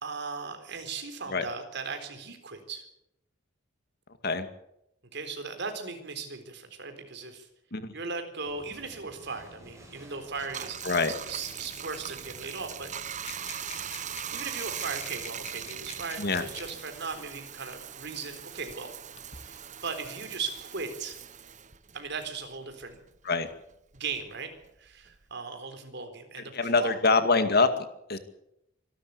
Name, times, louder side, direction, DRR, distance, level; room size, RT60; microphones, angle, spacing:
voice 1, 0.0-2.8 5.1-7.5 7.9-10.8 11.3-13.4 14.3-18.9 19.3-21.2 21.9-23.0 23.9-24.5 24.8-27.0, right 4 dB, 65° right, 7 dB, 4.0 m, -38 dB
sound 1, 8.4-16.8, right 1 dB, 15° right, 6.6 m, -53 dB
Bathtub (filling or washing), 10.3-23.2 23.5-25.3, right 9 dB, 40° right, 1.0 m, -41 dB
sound 2, 13.2-16.8 17.8-17.9 18.7-19.4, left 5 dB, 35° left, 2.6 m, -47 dB
voice 2, 26.5-28.2, left 3 dB, 55° left, 9 dB, 2.2 m, -25 dB
25.5 x 12.5 x 8.6 m, 0.80 s
head